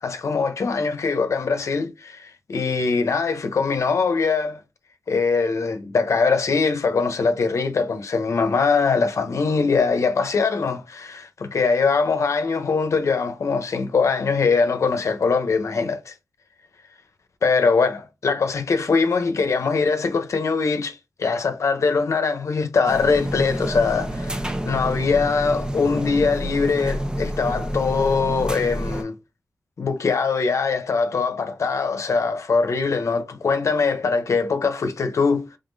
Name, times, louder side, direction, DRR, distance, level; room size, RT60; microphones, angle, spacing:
voice 1, 0.0-4.6 5.1-16.1 17.4-29.1 29.8-35.4, left 4 dB, 70° left, 0.8 m, -22 dB
sound 1, 22.9-29.0, equal, 15° right, 0.7 m, -28 dB
3.8 x 3.6 x 2.7 m
cardioid pair, 60°, 5 cm